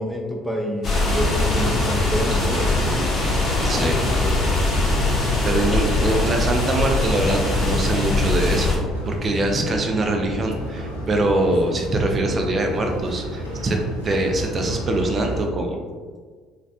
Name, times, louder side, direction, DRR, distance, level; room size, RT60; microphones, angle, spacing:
voice 1, 0.0-3.0 3.7-4.4, equal, 5° left, 0 dB, 0.7 m, -28 dB
sound 1, 0.8-8.8, left 2 dB, 45° left, 0.8 m, -21 dB
sound 2, 1.0-15.4, equal, 85° left, 0.5 m, -31 dB
voice 2, 3.6-4.0 5.1-8.8 9.1-13.8 14.0-15.8, right 2 dB, 35° right, 2 dB, 0.5 m, -23 dB
4.1 x 2.5 x 2.4 m, 1.5 s
figure-of-eight pair, 50°, 0 cm